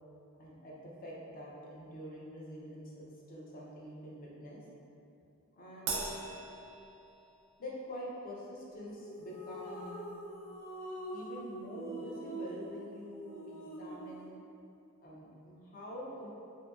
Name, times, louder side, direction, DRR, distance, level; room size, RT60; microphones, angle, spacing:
voice 1, 0.4-4.6 5.6-6.2 7.6-10.0 11.1-14.4 15.0-16.3, equal, 40° left, -5 dB, 0.5 m, -46 dB
Crash cymbal, 5.9-7.5, right 4 dB, 65° right, 0.4 m, -39 dB
sound 1, 8.9-14.2, right 1 dB, 75° left, 1.0 m, -45 dB
2.6 x 2.6 x 2.3 m, 2.6 s
head